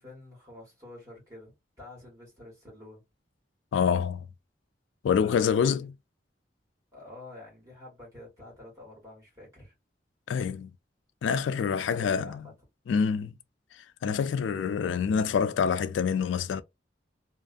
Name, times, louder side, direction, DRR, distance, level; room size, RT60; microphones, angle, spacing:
voice 1, 0.0-3.0 5.2-5.9 6.9-9.7 11.7-12.5, left 2 dB, 20° right, 1.5 m, -48 dB
voice 2, 3.7-4.3 5.0-5.9 10.3-10.7 11.2-12.4 12.9-13.3 14.0-16.6, left 6 dB, 90° left, 0.3 m, -26 dB
2.5 x 2.4 x 2.4 m
head